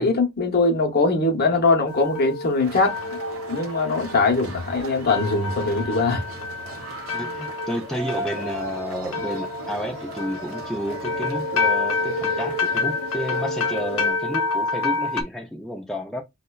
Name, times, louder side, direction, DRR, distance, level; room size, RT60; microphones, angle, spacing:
voice 1, 0.0-3.0 3.5-6.2, left 3 dB, 45° left, 0.7 m, -21 dB
sound 1, 1.9-15.2, left 4 dB, 90° left, 0.6 m, -28 dB
sound 2, 2.6-14.1, right 3 dB, 80° right, 0.7 m, -36 dB
voice 2, 7.1-16.2, equal, ahead, 0.3 m, -31 dB
5.2 x 2.1 x 2.2 m
head